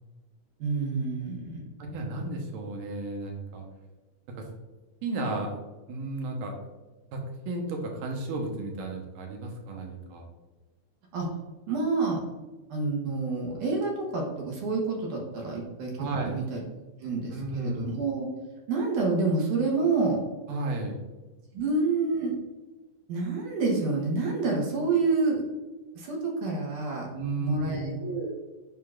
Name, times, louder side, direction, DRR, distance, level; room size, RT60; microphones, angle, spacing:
voice 1, 0.6-1.6 11.1-11.3 11.7-12.2 12.7-16.6 17.0-18.3 18.7-20.2 21.5-22.4 23.1-25.4 26.0-27.1 27.4-28.3, right 3 dB, 70° right, -1 dB, 2.5 m, -28 dB
voice 2, 1.8-3.7 4.3-4.4 5.0-5.5 5.9-6.5 7.1-10.3 16.0-16.4 17.3-18.0 20.5-21.0 27.1-28.0, right 2 dB, 90° right, 1 dB, 2.6 m, -33 dB
11.0 x 3.7 x 2.4 m, 1.2 s
omnidirectional pair, 3.7 m